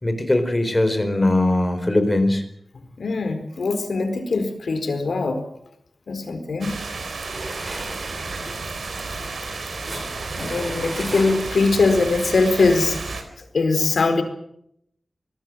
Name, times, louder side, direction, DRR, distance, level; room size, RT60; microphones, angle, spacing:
voice 1, 0.0-2.4, left 1 dB, 20° left, 9 dB, 4.3 m, -20 dB
voice 2, 3.0-5.4 6.1-6.8 10.3-13.0 13.5-14.2, left 3 dB, 75° left, 8 dB, 4.7 m, -21 dB
sound 1, 6.6-13.2, right 3 dB, 75° right, 4.4 m, -32 dB
sound 2, 7.2-11.8, right 2 dB, 30° right, 4.7 m, -36 dB
25.0 x 19.0 x 7.7 m, 0.74 s
wide cardioid pair, 115°, 0 cm